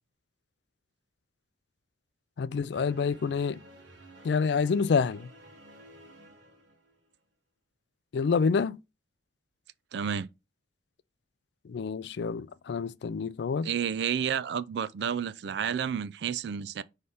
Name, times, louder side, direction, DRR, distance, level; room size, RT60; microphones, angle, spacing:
voice 1, 2.4-3.6 4.2-5.3 8.1-8.8 11.7-13.7, left 5 dB, 65° left, 0.3 m, -27 dB
sound 1, 2.7-7.1, right 1 dB, 80° right, 1.3 m, -53 dB
voice 2, 9.9-10.3 13.6-16.8, right 8 dB, 60° right, 0.3 m, -30 dB
5.6 x 3.2 x 5.4 m
head